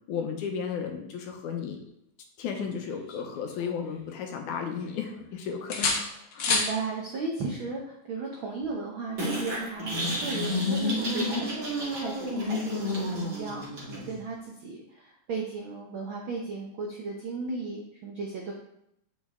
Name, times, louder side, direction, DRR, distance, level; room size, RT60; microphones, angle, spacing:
voice 1, 0.1-1.8 2.4-5.9 6.3-6.5, left 6 dB, 70° left, 3 dB, 2.2 m, -34 dB
sound 1, 2.6-4.1 4.5-5.3 5.7-6.8 8.6-8.8, left 3 dB, 90° left, 0.9 m, -31 dB
voice 2, 6.5-18.5, right 3 dB, 85° right, -1 dB, 1.1 m, -35 dB
sound 2, 9.2-14.2, left 1 dB, 30° right, 2.0 m, -30 dB
8.0 x 6.2 x 3.7 m, 0.79 s
omnidirectional pair, 3.8 m